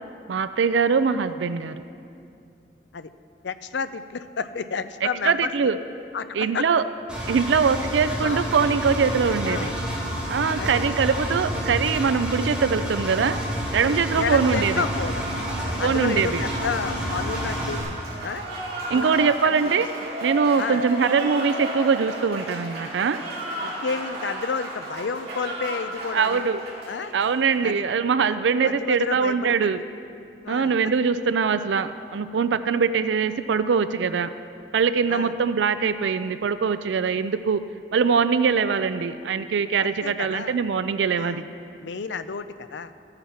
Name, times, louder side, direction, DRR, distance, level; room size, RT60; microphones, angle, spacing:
voice 1, 0.3-1.8 5.0-5.8 6.3-6.8 7.3-9.7 10.3-13.4 13.7-14.8 15.8-16.4 18.9-19.9 20.2-23.2 26.1-26.6 27.1-29.8 30.5-34.3 34.7-37.6 37.9-41.5, right 5 dB, 85° right, 12 dB, 0.4 m, -22 dB
voice 2, 3.4-5.5 6.1-6.7 8.2-8.4 9.4-9.8 10.6-10.8 14.2-15.2 15.8-17.8 18.2-18.4 18.9-19.6 20.6-20.8 23.6-26.4 26.9-27.1 27.6-27.9 28.6-29.8 30.4-30.7 35.1-35.3 39.8-40.6 41.2-41.4 41.8-42.9, left 5 dB, 80° left, 12 dB, 0.5 m, -31 dB
Engine, 7.1-17.8, equal, 5° right, 2.4 m, -29 dB
Applause, 14.2-27.7, right 1 dB, 55° right, 3.6 m, -34 dB
14.5 x 8.9 x 5.7 m, 2.5 s
head